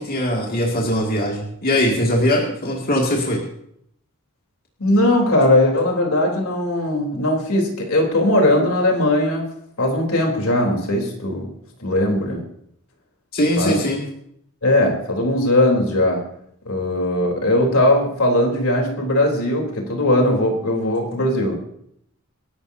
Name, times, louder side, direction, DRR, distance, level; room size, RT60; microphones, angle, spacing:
voice 1, 0.0-3.4 13.3-14.0, equal, 45° left, -2 dB, 2.4 m, -21 dB
voice 2, 4.8-9.4 9.8-11.5 11.8-12.4 13.6-13.8 14.6-16.2 16.7-21.5, left 1 dB, 75° left, 1 dB, 3.7 m, -19 dB
27.0 x 11.5 x 2.8 m, 0.71 s
head